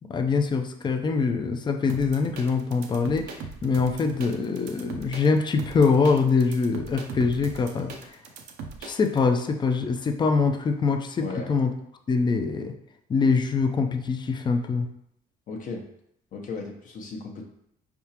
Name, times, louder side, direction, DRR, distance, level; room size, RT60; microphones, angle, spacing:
voice 1, 0.1-3.4 3.6-7.9 8.8-11.7 12.1-12.7 13.1-14.9, left 4 dB, 25° left, 6 dB, 0.5 m, -24 dB
sound 1, 1.9-9.2, right 4 dB, 80° right, 0.7 m, -39 dB
voice 2, 11.2-11.5 15.5-15.8 16.3-17.4, left 4 dB, 50° left, 1 dB, 0.8 m, -35 dB
4.8 x 3.5 x 2.9 m, 0.74 s
cardioid pair, 110°, 17 cm